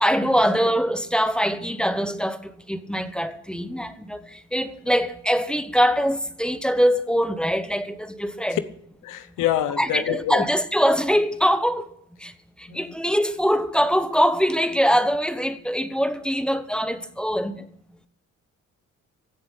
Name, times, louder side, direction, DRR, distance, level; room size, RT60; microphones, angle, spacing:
voice 1, 0.0-8.6 9.8-11.9 12.2-12.3 12.6-17.7, equal, 5° left, 1.0 m, -23 dB
voice 2, 9.0-10.4 12.7-12.8, left 12 dB, 85° left, 0.9 m, -26 dB
16.0 x 7.5 x 8.4 m
cardioid pair, 90°, 30 cm